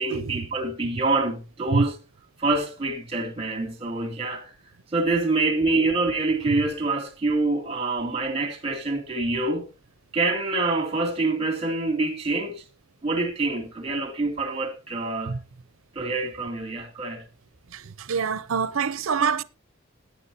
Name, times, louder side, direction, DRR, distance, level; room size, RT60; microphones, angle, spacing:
voice 1, 0.0-2.0 2.4-4.5 4.9-9.7 10.1-12.6 13.0-15.3 15.9-17.2, right 3 dB, 30° right, 2.6 m, -26 dB
voice 2, 18.1-19.4, right 5 dB, 80° right, 0.6 m, -25 dB
16.5 x 9.4 x 2.8 m
head